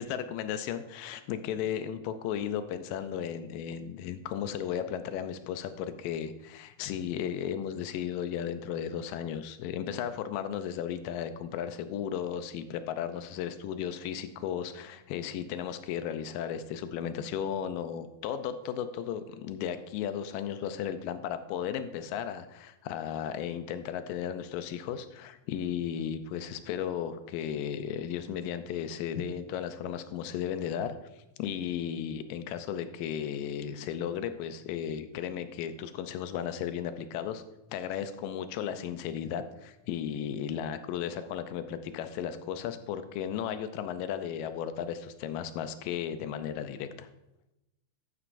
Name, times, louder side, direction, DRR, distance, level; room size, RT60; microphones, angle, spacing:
voice 1, 0.0-31.0 31.4-37.4 37.7-47.1, left 9 dB, 85° left, 10 dB, 2.3 m, -35 dB
12.5 x 9.5 x 2.6 m, 0.93 s
omnidirectional pair, 3.9 m